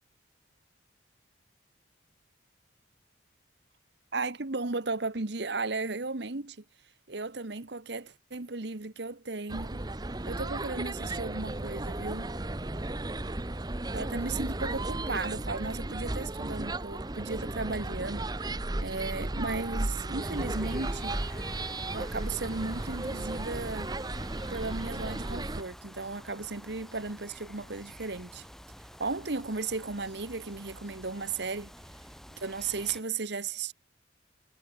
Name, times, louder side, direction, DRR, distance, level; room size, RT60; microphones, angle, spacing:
voice 1, 4.1-6.6 7.1-9.8 10.3-12.4 13.9-21.2 21.9-23.9 24.5-28.5 29.0-31.7 32.4-33.7, right 3 dB, 60° right, 1.3 m, -35 dB
sound 1, 9.5-25.6, right 2 dB, 20° right, 0.9 m, -35 dB
sound 2, 20.2-33.0, equal, ahead, 6.6 m, -49 dB
head